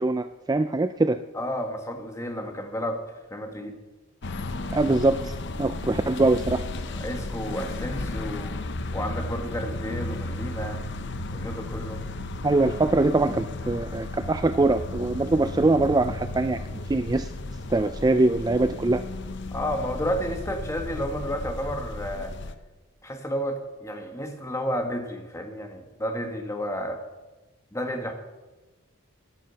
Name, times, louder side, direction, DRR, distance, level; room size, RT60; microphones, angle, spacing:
voice 1, 0.0-1.2 4.7-6.6 12.4-16.6 16.9-17.3 17.7-19.0, right 2 dB, 20° right, 10 dB, 0.3 m, -23 dB
voice 2, 1.3-3.0 3.3-3.8 6.9-8.6 8.9-10.8 11.3-12.0 19.5-22.3 23.0-27.0 27.7-28.1, equal, 15° left, 4 dB, 1.6 m, -31 dB
sound 1, 4.2-22.5, left 2 dB, 55° left, 0.8 m, -34 dB
16.0 x 10.5 x 5.8 m, 1.2 s
head